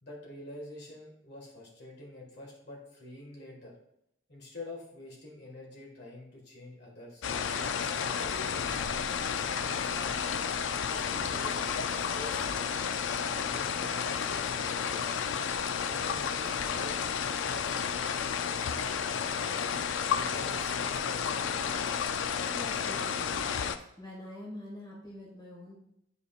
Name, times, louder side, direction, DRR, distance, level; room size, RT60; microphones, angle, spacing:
voice 1, 0.0-3.7 4.3-9.9 10.9-11.6 11.9-12.5 13.1-15.3 15.8-16.9 17.2-19.2 20.1-21.8, left 1 dB, 60° left, -2 dB, 1.7 m, -47 dB
sound 1, 7.2-23.8, left 7 dB, 85° left, 0.4 m, -32 dB
voice 2, 22.5-23.6 24.0-25.8, left 1 dB, 25° left, -4 dB, 1.7 m, -45 dB
9.4 x 4.8 x 2.4 m, 0.76 s
head